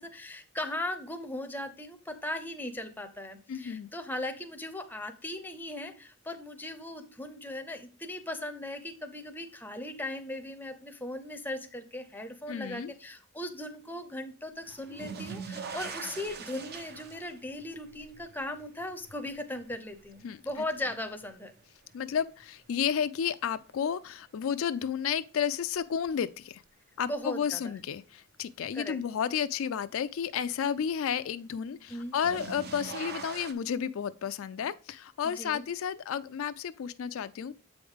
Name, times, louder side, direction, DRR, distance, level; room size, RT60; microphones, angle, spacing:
voice 1, 0.0-21.5 27.1-27.7 28.7-29.0 31.9-32.2 35.2-35.6, left 1 dB, 10° left, 0.6 m, -38 dB
voice 2, 3.5-3.9 12.5-12.9 20.2-20.4 21.9-26.6 27.0-37.5, left 8 dB, 75° left, 0.4 m, -32 dB
sound 1, 14.7-21.7 22.1-22.8 24.4-24.5 26.1-26.2 31.9-33.5, right 5 dB, 50° right, 0.7 m, -43 dB
7.7 x 4.9 x 3.6 m
head